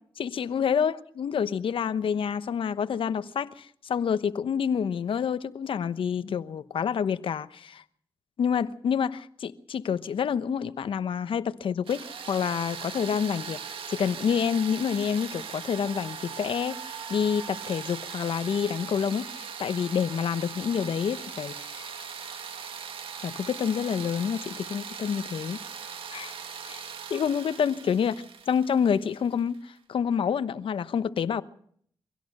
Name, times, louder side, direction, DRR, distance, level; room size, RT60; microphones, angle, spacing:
voice 1, 0.2-7.8 8.4-13.6 13.9-21.9 23.2-25.6 26.1-26.4 26.6-26.8 27.1-31.4, left 7 dB, 75° left, 1.0 m, -28 dB
sound 1, 11.9-29.6, right 6 dB, 80° right, 2.1 m, -39 dB
24.0 x 16.5 x 6.6 m
cardioid pair, 50°, 9 cm